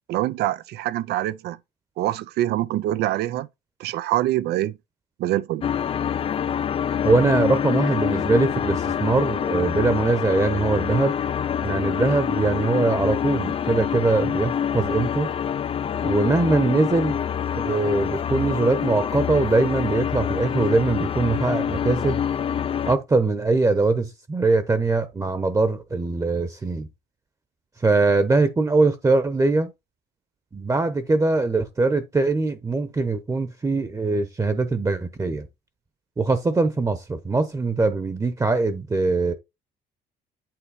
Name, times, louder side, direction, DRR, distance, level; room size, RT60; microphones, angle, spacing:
voice 1, 0.1-1.6 2.0-3.5 3.8-4.7 5.2-5.7, right 14 dB, 75° right, 0.6 m, -25 dB
sound 1, 5.6-22.9, left 8 dB, 35° left, 0.4 m, -26 dB
voice 2, 7.0-11.1 11.6-15.3 16.0-17.2 17.5-22.2 22.9-26.9 27.8-29.7 30.5-35.5 36.2-39.3, right 3 dB, 20° right, 1.0 m, -22 dB
8.8 x 3.1 x 4.9 m
cardioid pair, 110°, 17 cm